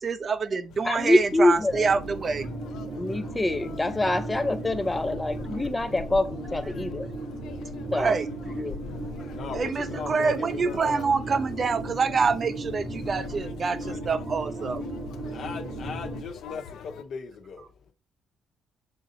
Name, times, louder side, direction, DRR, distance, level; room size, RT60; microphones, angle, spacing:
voice 1, 0.0-2.5 7.9-8.3 9.5-14.9, right 5 dB, 45° right, 0.6 m, -26 dB
Conversation, 0.7-17.0, left 6 dB, 85° left, 0.6 m, -45 dB
voice 2, 0.8-1.9 2.8-7.1 7.9-8.1 8.6-8.7, left 2 dB, 15° left, 0.5 m, -25 dB
sound 1, 1.7-16.2, right 2 dB, 85° right, 2.0 m, -36 dB
voice 3, 9.3-11.1 15.3-17.6, left 5 dB, 65° left, 1.0 m, -38 dB
6.3 x 3.8 x 4.1 m
cardioid pair, 90°, 0 cm